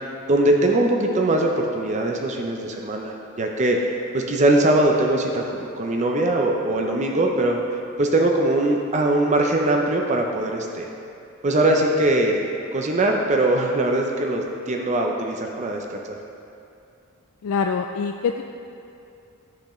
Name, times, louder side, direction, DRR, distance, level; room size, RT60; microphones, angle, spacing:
voice 1, 0.3-7.6 8.0-10.9 11.4-12.4 12.7-16.2, right 1 dB, 30° right, 1 dB, 0.5 m, -21 dB
voice 2, 17.4-18.4, left 5 dB, 65° left, 4 dB, 0.3 m, -24 dB
10.5 x 7.9 x 3.1 m, 2.7 s
head